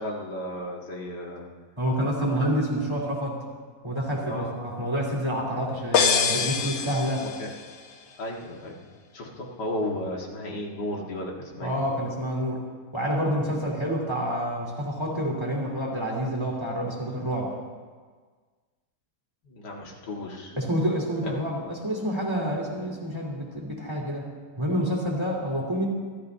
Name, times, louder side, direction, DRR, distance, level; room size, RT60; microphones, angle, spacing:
voice 1, 0.0-1.4 4.3-4.5 7.2-7.5 8.2-11.8 19.5-20.5 21.2-21.3, left 1 dB, 90° left, -2 dB, 2.6 m, -34 dB
voice 2, 1.8-3.4 3.8-7.3 11.6-12.6 12.9-17.5 20.6-24.3 24.6-25.9, equal, 15° right, -4 dB, 3.4 m, -28 dB
sound 1, 5.9-7.7, left 6 dB, 50° left, 1.0 m, -24 dB
28.5 x 13.5 x 2.8 m, 1.5 s
omnidirectional pair, 1.8 m